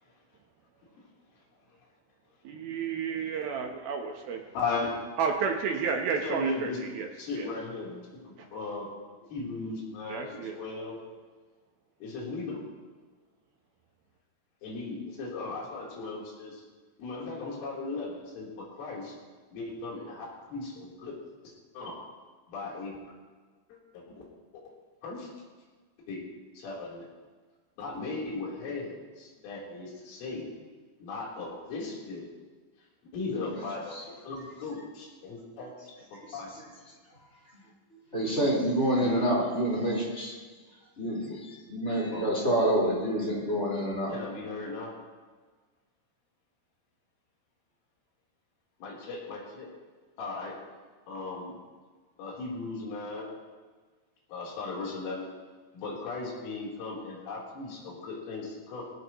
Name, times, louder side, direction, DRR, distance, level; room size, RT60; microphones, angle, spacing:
voice 1, 2.4-4.4 5.2-7.5 8.4-8.5 10.1-10.9, right 6 dB, 75° right, 3 dB, 2.3 m, -32 dB
voice 2, 4.5-5.0 6.2-6.8 7.2-8.9 9.3-11.0 12.0-12.6 14.6-16.6 17.0-19.1 19.5-21.1 21.7-22.0 22.5-23.0 23.9-24.2 25.0-25.3 26.1-26.2 26.5-27.1 27.8-28.9 29.4-30.5 31.0-32.3 33.0-36.5 39.0-39.4 42.1-42.3 44.1-44.9 48.8-49.7 50.2-50.6 51.1-51.6 52.2-53.3 54.3-55.3 55.7-58.8, left 3 dB, 85° left, -4 dB, 6.3 m, -37 dB
voice 3, 33.3-33.6 33.9-34.0 36.2-36.6 38.1-40.4 41.0-44.1, right 1 dB, 15° left, -4 dB, 4.2 m, -28 dB
20.5 x 17.5 x 3.1 m, 1.4 s
omnidirectional pair, 5.6 m